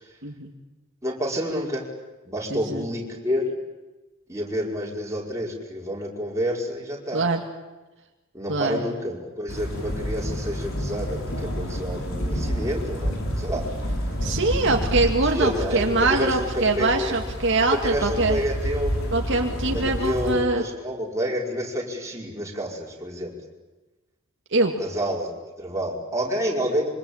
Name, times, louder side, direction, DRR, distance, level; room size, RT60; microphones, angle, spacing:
voice 1, 1.0-1.9 2.3-3.6 4.3-7.2 8.3-13.7 14.7-14.8 15.2-17.2 17.6-19.2 19.7-23.3 24.8-26.9, equal, 15° right, -2 dB, 5.1 m, -29 dB
voice 2, 2.5-2.8 7.1-7.4 8.5-8.8 14.2-18.4 19.1-20.6 24.5-24.7, right 3 dB, 55° right, 2 dB, 2.2 m, -23 dB
sound 1, 9.5-20.4, equal, 65° left, 5.6 m, -29 dB
26.5 x 24.5 x 8.7 m, 1.1 s
head